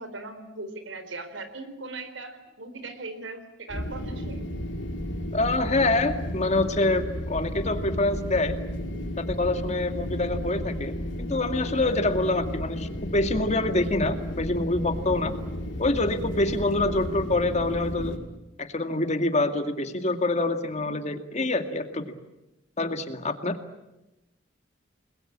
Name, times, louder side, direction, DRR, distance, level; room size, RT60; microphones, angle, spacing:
voice 1, 0.0-4.5, right 2 dB, 80° right, 10 dB, 4.1 m, -39 dB
sound 1, 3.7-18.2, left 1 dB, 70° left, 5.3 m, -33 dB
voice 2, 5.3-8.5 9.2-10.9 11.3-15.3 15.8-18.2 18.6-22.2 22.8-23.6, left 2 dB, 35° left, 8 dB, 2.2 m, -26 dB
30.0 x 21.5 x 8.8 m, 0.95 s
head